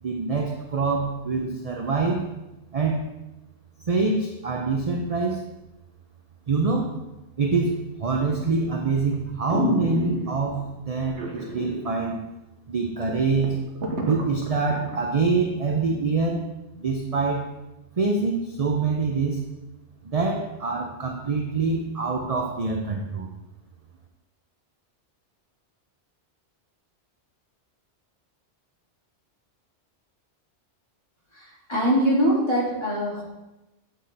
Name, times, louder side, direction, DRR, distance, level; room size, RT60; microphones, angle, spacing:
voice 1, 0.0-2.3 2.7-3.1 3.9-5.4 6.5-6.9 7.4-12.2 12.7-13.6 14.1-16.4 16.7-17.5 18.0-19.4 20.0-23.3, right 4 dB, 40° right, 1 dB, 0.6 m, -25 dB
sound 1, 8.3-8.7 9.1-9.2 9.5-10.5 11.2-11.9 12.2-12.3 12.7-12.8 13.1-15.0 15.4-15.5, right 1 dB, 70° right, 1.4 m, -29 dB
voice 2, 31.3-33.2, equal, 25° left, -6 dB, 2.1 m, -23 dB
8.8 x 3.8 x 4.1 m, 0.98 s
omnidirectional pair, 1.2 m